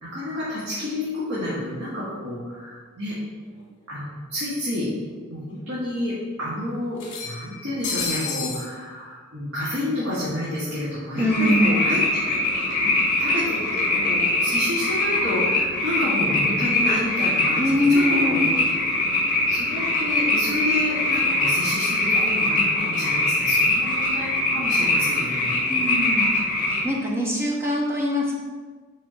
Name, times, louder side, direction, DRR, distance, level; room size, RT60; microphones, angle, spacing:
voice 1, 0.0-3.2 3.9-4.9 5.3-12.0 12.3-12.4 12.6-18.0 18.3-18.5 19.5-25.4, left 1 dB, 80° right, -10 dB, 1.9 m, -29 dB
sound 1, 3.6-3.7 4.0-4.1 5.1-5.2 5.6-5.7 7.0-8.7, left 5 dB, 60° left, 1.5 m, -31 dB
voice 2, 11.1-11.8 17.6-18.4 25.7-26.3 26.7-28.3, left 1 dB, 10° right, -3 dB, 1.2 m, -23 dB
sound 2, 11.2-26.8, left 2 dB, 40° left, 1.9 m, -22 dB
9.9 x 4.2 x 2.9 m, 1.4 s
head